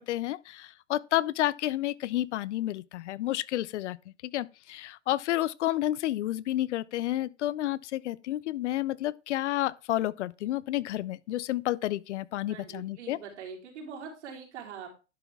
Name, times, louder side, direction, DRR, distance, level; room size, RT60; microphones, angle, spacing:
voice 1, 0.0-4.0 4.2-13.2, left 14 dB, 75° left, 0.6 m, -30 dB
voice 2, 12.5-14.9, right 6 dB, 75° right, 4.1 m, -43 dB
11.0 x 6.1 x 3.6 m
hypercardioid pair, 140°, 35 cm